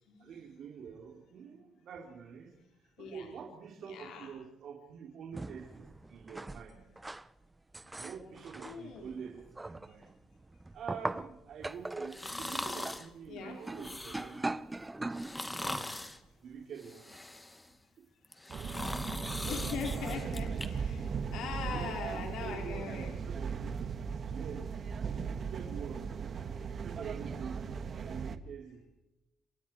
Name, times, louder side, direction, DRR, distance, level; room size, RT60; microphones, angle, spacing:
voice 1, 0.2-6.8 8.0-10.1 10.7-14.5 15.5-15.9 16.4-17.2 18.0-18.1 21.7-23.8 24.3-26.1 26.8-28.9, right 7 dB, 70° right, 0 dB, 3.7 m, -47 dB
voice 2, 3.9-4.3 8.6-9.0 13.3-13.6 19.4-23.1, left 6 dB, 90° left, 1 dB, 4.4 m, -41 dB
sound 1, 5.3-7.3 7.7-15.8 16.2-16.3, right 2 dB, 15° right, 0.8 m, -41 dB
sound 2, 12.1-13.1 13.7-14.4 15.1-16.2 16.8-17.7 18.2-20.7 21.1-21.2, left 1 dB, 15° left, 2.2 m, -40 dB
sound 3, 18.5-28.4, right 6 dB, 50° right, 1.6 m, -37 dB
28.0 x 26.0 x 4.7 m, 0.93 s
cardioid pair, 90°, 0 cm